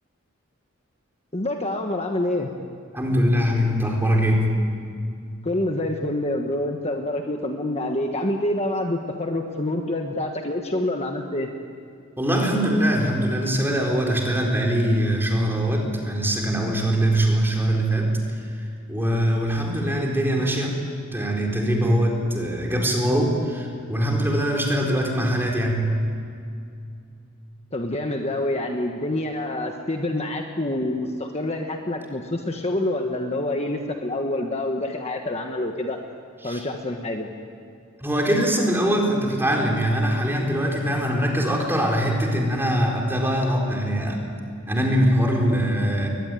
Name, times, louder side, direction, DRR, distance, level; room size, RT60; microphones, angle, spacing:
voice 1, 1.3-2.5 5.4-11.5 27.7-36.0 36.4-37.3, left 1 dB, 30° left, 3 dB, 1.4 m, -27 dB
voice 2, 2.9-4.5 12.2-18.5 18.9-20.7 21.1-25.9 36.4-36.6 38.0-44.2 44.7-46.1, equal, 10° right, 0 dB, 4.2 m, -22 dB
22.0 x 20.0 x 9.2 m, 2.4 s
head